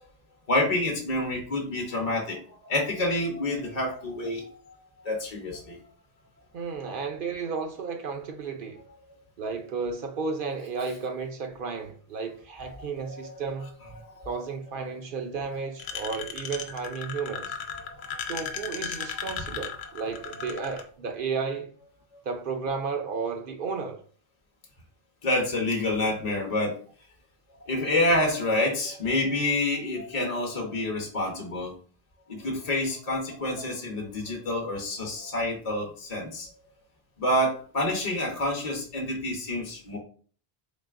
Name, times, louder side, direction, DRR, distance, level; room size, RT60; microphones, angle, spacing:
voice 1, 0.5-4.8 5.0-5.8 13.0-13.3 14.0-14.3 15.4-15.6 17.7-18.2 25.2-26.7 27.6-31.7 32.3-36.5 37.2-40.0, left 1 dB, 40° left, 0.8 m, -28 dB
voice 2, 6.5-8.8 9.4-13.7 14.3-17.6 18.3-21.7 22.2-24.0, right 5 dB, 65° right, 0.7 m, -33 dB
sound 1, 15.8-20.8, left 7 dB, 85° left, 0.8 m, -35 dB
3.9 x 3.5 x 2.4 m
omnidirectional pair, 1.0 m